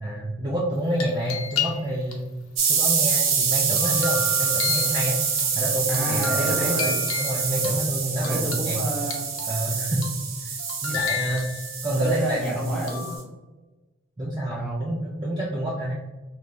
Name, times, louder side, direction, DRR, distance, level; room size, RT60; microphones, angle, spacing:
voice 1, 0.0-2.2 2.7-5.2 5.5-6.7 7.2-8.8 9.5-10.1 10.4-10.6 10.8-11.5 11.8-12.6 14.2-15.9, right 1 dB, 20° right, -5 dB, 0.4 m, -28 dB
sound 1, 0.7-2.1 2.6-5.4 5.9-7.7 8.2-9.6 10.0-10.3 10.6-11.9 12.9-13.2, left 6 dB, 90° left, 0.7 m, -33 dB
sound 2, 2.6-13.2, right 6 dB, 70° right, 0.7 m, -26 dB
voice 2, 5.9-7.0 8.2-9.3 11.8-13.3 14.5-14.8, right 1 dB, ahead, -6 dB, 0.9 m, -30 dB
3.3 x 3.2 x 2.5 m, 1.2 s
head